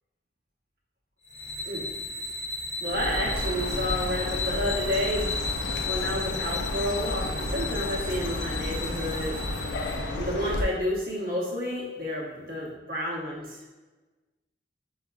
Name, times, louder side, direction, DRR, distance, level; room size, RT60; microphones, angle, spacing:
sound 1, 1.2-10.0, left 4 dB, 35° left, 1.0 m, -34 dB
Chirp tweet, 2.8-10.6, left 1 dB, 75° left, 0.5 m, -32 dB
voice 1, 2.8-5.3 5.8-9.4 10.1-13.6, equal, 50° right, -4 dB, 0.9 m, -30 dB
5.6 x 2.3 x 2.3 m, 1.2 s
head